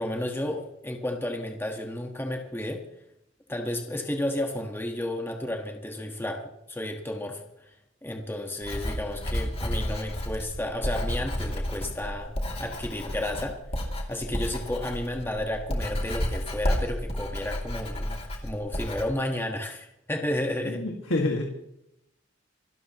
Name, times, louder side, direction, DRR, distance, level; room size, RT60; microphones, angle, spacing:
voice 1, 0.0-2.8 3.5-7.7 8.0-12.3 12.6-13.6 14.1-18.2 18.4-20.8, left 1 dB, 10° left, 2 dB, 1.5 m, -32 dB
Writing, 8.6-19.0, equal, 30° left, 2.8 m, -31 dB
voice 2, 20.7-21.4, left 2 dB, 90° left, 1 dB, 2.0 m, -27 dB
26.5 x 13.0 x 3.1 m, 0.79 s
head